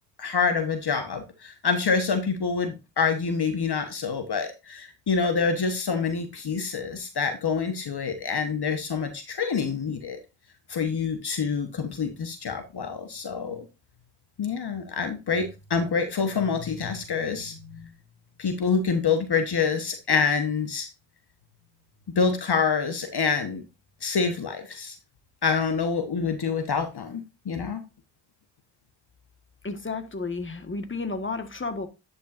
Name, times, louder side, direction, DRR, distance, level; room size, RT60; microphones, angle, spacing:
voice 1, 0.2-10.2 10.7-13.7 14.4-17.8 18.4-20.9 22.1-23.6 24.0-25.0 25.4-27.8, left 5 dB, 55° left, 1.2 m, -26 dB
voice 2, 29.6-31.9, left 3 dB, 25° left, 1.5 m, -32 dB
10.5 x 5.5 x 2.5 m
supercardioid pair, 40°, 47 cm